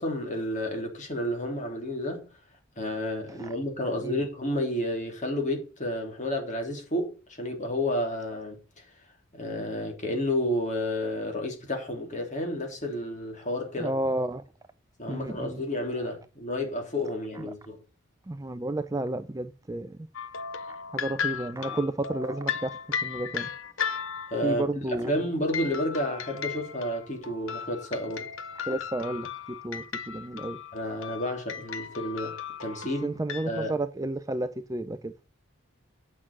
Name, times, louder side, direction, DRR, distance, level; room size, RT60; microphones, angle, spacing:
voice 1, 0.0-2.3 2.8-8.6 9.3-13.9 15.0-17.8 24.3-24.6 25.1-28.3 30.7-33.2 33.4-33.8, left 1 dB, 35° left, 3.3 m, -31 dB
voice 2, 3.8-4.3 13.8-14.4 15.1-15.6 15.9-16.1 17.3-17.5 18.3-20.0 20.7-23.5 24.4-25.2 28.7-29.3 29.6-30.6 33.0-35.1, right 1 dB, 15° right, 0.4 m, -32 dB
sound 1, 20.1-24.6 25.5-33.5, left 7 dB, 75° left, 1.0 m, -36 dB
8.6 x 6.2 x 6.0 m
head